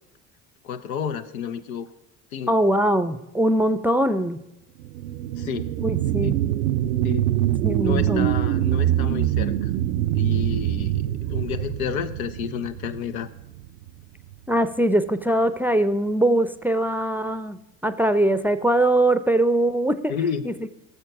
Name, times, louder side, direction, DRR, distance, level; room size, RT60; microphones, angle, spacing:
voice 1, 0.6-1.9 2.3-2.5 5.4-5.7 6.2-6.3 7.0-7.3 7.8-9.7 10.1-13.3 20.1-20.5, left 7 dB, 80° left, 9 dB, 0.8 m, -30 dB
voice 2, 2.5-4.4 5.8-6.4 7.6-8.3 14.5-20.2 20.4-20.7, right 1 dB, 5° right, 12 dB, 0.6 m, -22 dB
sound 1, 4.8-13.9 14.3-14.4, right 13 dB, 75° right, 0.6 m, -24 dB
17.5 x 6.9 x 5.9 m, 0.88 s
hypercardioid pair, 65°, 42 cm